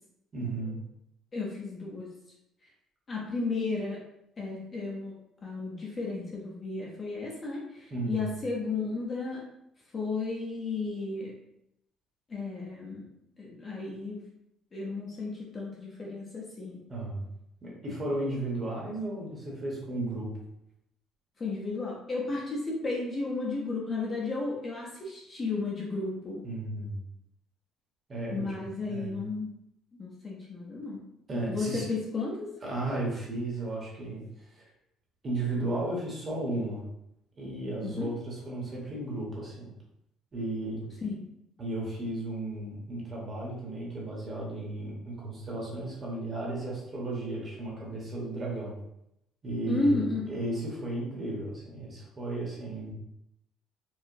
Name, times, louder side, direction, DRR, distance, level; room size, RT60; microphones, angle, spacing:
voice 1, 0.3-0.8 7.9-8.3 16.9-17.3 17.6-20.3 26.4-27.0 28.1-28.5 28.9-29.2 31.3-31.9 32.6-34.6 35.2-36.8 37.4-39.7 40.3-40.9 41.6-48.8 49.4-52.9, right 2 dB, 25° right, -4 dB, 0.9 m, -34 dB
voice 2, 1.3-2.1 3.1-4.0 4.4-5.1 5.4-9.4 9.9-11.3 12.3-13.0 13.4-14.2 14.7-16.8 21.4-26.4 28.3-29.5 30.0-31.0 31.5-32.5 37.8-38.1 41.0-41.3 49.7-50.2, left 3 dB, 25° left, -3 dB, 0.5 m, -33 dB
4.6 x 2.0 x 2.5 m, 0.80 s
cardioid pair, 180°, 0 cm